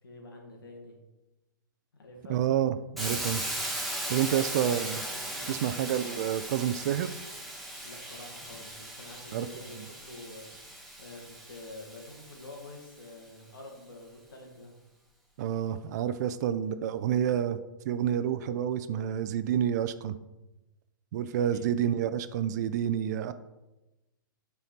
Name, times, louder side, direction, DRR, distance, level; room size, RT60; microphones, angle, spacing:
voice 1, 0.0-1.0 1.9-2.5 4.2-4.5 5.3-5.6 7.8-14.8 16.2-16.4 21.5-21.9, left 2 dB, 80° left, 2 dB, 2.0 m, -48 dB
voice 2, 2.3-3.4 4.1-5.0 5.5-7.1 9.3-9.5 9.8-9.9 15.4-17.6 17.9-20.2 21.1-23.3, right 10 dB, 55° right, 12 dB, 0.5 m, -29 dB
Hiss, 3.0-12.9, right 1 dB, ahead, 1.5 m, -38 dB
8.8 x 4.5 x 4.3 m, 1.0 s
hypercardioid pair, 120°, 11 cm